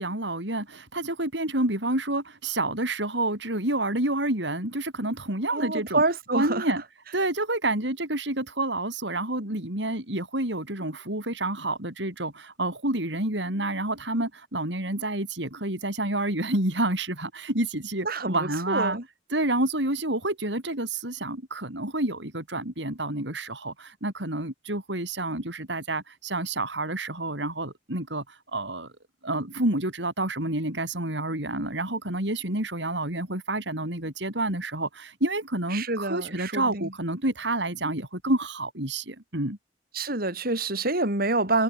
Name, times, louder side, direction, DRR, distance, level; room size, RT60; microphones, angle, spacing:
voice 1, 0.0-6.0 6.3-6.8 7.1-19.0 19.3-28.9 29.2-39.6, right 2 dB, 70° right, 6.7 m, -29 dB
voice 2, 5.5-6.6 18.0-19.0 35.7-36.9 39.9-41.6, right 2 dB, 55° right, 7.8 m, -27 dB
head